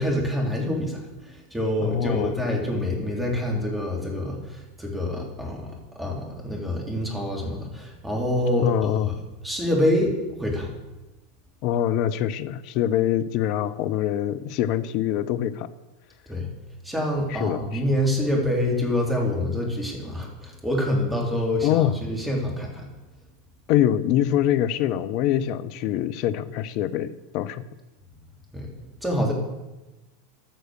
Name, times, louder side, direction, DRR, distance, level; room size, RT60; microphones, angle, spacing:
voice 1, 0.0-9.2 9.4-10.7 16.3-16.5 16.8-22.9 28.5-28.7 29.0-29.3, left 1 dB, 5° right, -1 dB, 3.4 m, -26 dB
voice 2, 1.8-2.3 8.6-9.1 11.6-15.7 17.3-17.8 21.6-22.0 23.7-27.6, left 11 dB, 50° left, 14 dB, 0.6 m, -24 dB
13.5 x 6.4 x 6.5 m, 1.1 s
figure-of-eight pair, 85°, 0 cm